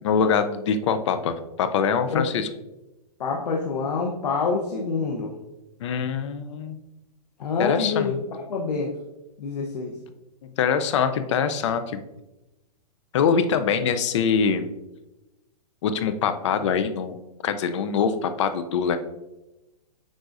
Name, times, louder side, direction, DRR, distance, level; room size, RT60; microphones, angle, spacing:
voice 1, 0.0-2.5 5.8-6.8 7.6-8.2 10.6-12.0 13.1-14.7 15.8-19.0, left 6 dB, 50° left, 10 dB, 0.5 m, -24 dB
voice 2, 3.2-5.3 7.4-8.9 9.4-10.0, left 4 dB, 80° left, 1 dB, 0.9 m, -26 dB
9.6 x 3.8 x 2.6 m, 1.0 s
hypercardioid pair, 155°, 20 cm